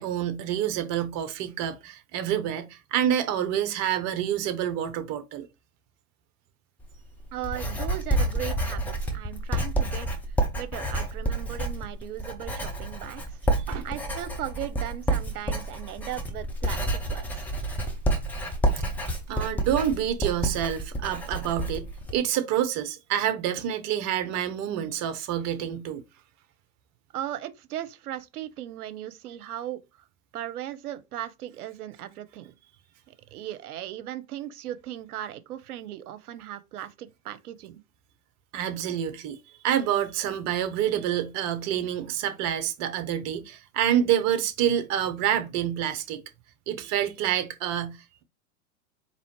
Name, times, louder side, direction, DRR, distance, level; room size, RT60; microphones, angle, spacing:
voice 1, 0.0-5.5 13.7-13.9 19.3-26.0 38.5-39.4 39.6-46.2 46.7-48.2, right 10 dB, 35° right, 0.8 m, -27 dB
Writing, 6.8-22.2, right 1 dB, 5° left, 0.3 m, -29 dB
voice 2, 7.3-10.1 10.5-13.2 13.8-17.2 27.1-29.8 30.3-32.5 33.1-37.8, right 12 dB, 70° right, 0.7 m, -37 dB
4.1 x 2.9 x 3.0 m
hypercardioid pair, 100°, 46 cm